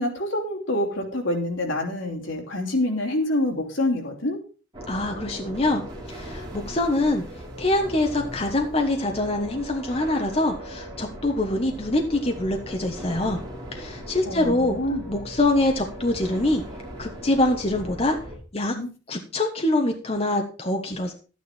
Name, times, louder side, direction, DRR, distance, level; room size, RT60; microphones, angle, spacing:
voice 1, 0.0-4.4 14.2-15.0 18.7-18.9, left 1 dB, 75° left, 2 dB, 3.1 m, -26 dB
sound 1, 4.7-18.4, equal, 20° right, 4.3 m, -38 dB
voice 2, 4.9-5.8 6.1-7.2 7.6-13.4 13.7-14.8 15.1-16.6 17.0-18.2 18.5-18.7 19.1-21.1, left 2 dB, 30° left, 4 dB, 1.2 m, -24 dB
12.0 x 9.3 x 4.4 m, 0.36 s
head